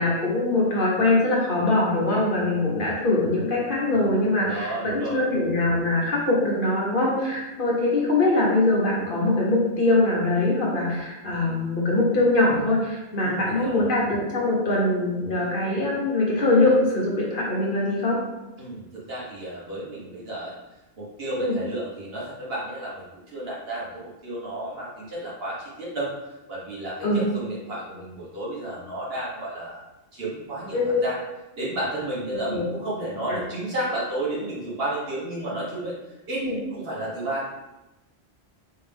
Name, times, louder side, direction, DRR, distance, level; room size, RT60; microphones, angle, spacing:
voice 1, 0.0-18.2 21.4-21.6 27.0-27.2 30.7-31.0 32.3-32.6 33.3-33.4 36.4-36.6, left 2 dB, 55° left, -4 dB, 1.3 m, -22 dB
voice 2, 4.5-5.2 13.2-13.8 18.6-20.5 21.0-29.8 30.1-31.2 31.6-36.0 36.3-36.4 36.7-37.5, right 1 dB, 70° right, -6 dB, 1.6 m, -32 dB
4.6 x 3.4 x 3.4 m, 1.0 s
omnidirectional pair, 1.1 m